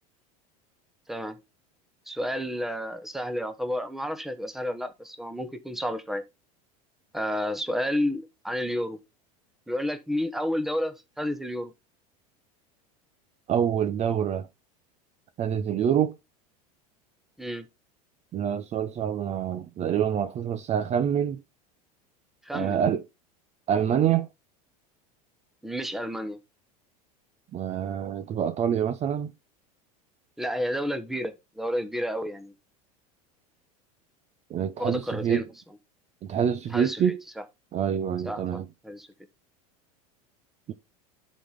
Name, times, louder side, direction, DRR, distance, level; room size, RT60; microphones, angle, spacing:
voice 1, 1.1-1.4 2.1-6.2 7.1-9.0 9.7-11.7 17.4-17.7 22.4-22.8 25.6-26.4 30.4-32.5 34.8-35.5 36.7-37.1 38.2-38.4 38.8-39.1, equal, ahead, 1.2 m, -31 dB
voice 2, 13.5-14.5 15.4-16.2 18.3-21.4 22.5-23.0 23.7-24.3 27.5-29.3 34.5-35.4 36.2-37.2 37.7-38.6 40.7-40.8, right 8 dB, 35° right, 0.7 m, -26 dB
11.0 x 4.3 x 3.5 m
hypercardioid pair, 95°, 19 cm